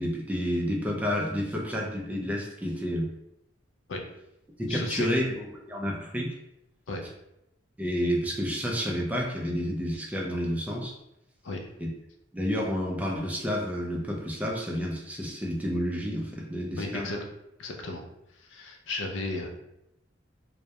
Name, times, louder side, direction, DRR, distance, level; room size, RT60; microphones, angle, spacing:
voice 1, 0.0-3.1 4.6-6.4 7.8-10.9 11.8-11.9 12.3-17.1, equal, 10° right, -1 dB, 0.3 m, -30 dB
voice 2, 4.7-5.1 6.9-7.0 11.4-11.7 16.8-17.2 17.6-18.0 18.4-19.5, left 2 dB, 70° left, 3 dB, 0.4 m, -34 dB
2.2 x 2.0 x 2.7 m, 0.84 s
head